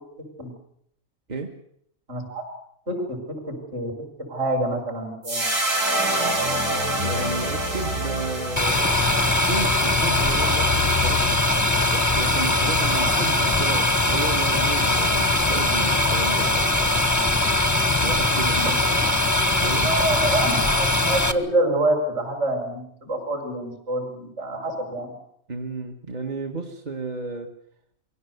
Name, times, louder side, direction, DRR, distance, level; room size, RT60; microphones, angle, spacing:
voice 1, 2.1-2.5 2.9-3.2 3.5-3.9 4.3-5.5 12.9-13.2 18.5-19.0 19.8-25.1, right 1 dB, 45° right, 3 dB, 6.1 m, -27 dB
sound 1, 5.2-11.6, right 1 dB, 65° right, 5.3 m, -27 dB
voice 2, 7.0-8.8 9.5-11.4 11.7-17.0 18.0-19.2 19.6-19.9 25.5-27.5, right 3 dB, 30° right, 3 dB, 1.4 m, -33 dB
sound 2, 8.6-21.3, left 2 dB, 15° left, 0.9 m, -21 dB
23.5 x 17.0 x 8.1 m, 0.70 s
omnidirectional pair, 1.5 m